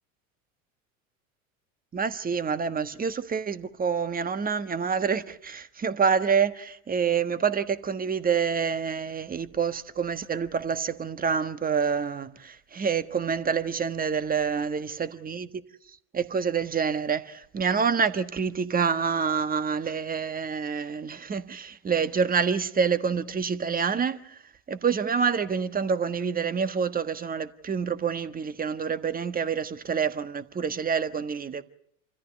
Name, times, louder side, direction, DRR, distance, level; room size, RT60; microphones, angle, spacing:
voice 1, 1.9-15.6 15.9-24.4 24.7-31.6, right 6 dB, 20° right, 1.4 m, -27 dB
28.0 x 14.5 x 9.6 m
hypercardioid pair, 85°, 43 cm